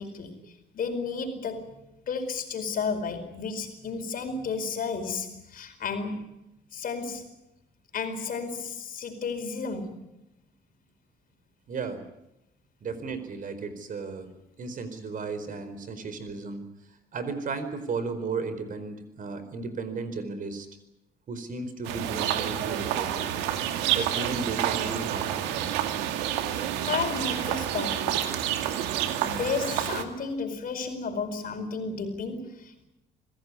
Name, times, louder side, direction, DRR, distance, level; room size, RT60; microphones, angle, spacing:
voice 1, 0.0-1.8 2.1-6.3 6.7-7.3 7.9-10.0 12.9-13.0 26.8-28.4 29.2-32.9, left 5 dB, 55° left, 4.8 m, -33 dB
voice 2, 11.7-12.0 12.8-14.3 14.6-16.6 17.1-20.7 21.3-23.3 23.9-25.7, right 4 dB, 50° right, 4.5 m, -34 dB
sound 1, 21.8-30.0, right 11 dB, 85° right, 2.1 m, -29 dB
25.5 x 16.5 x 9.9 m
supercardioid pair, 70°, 17 cm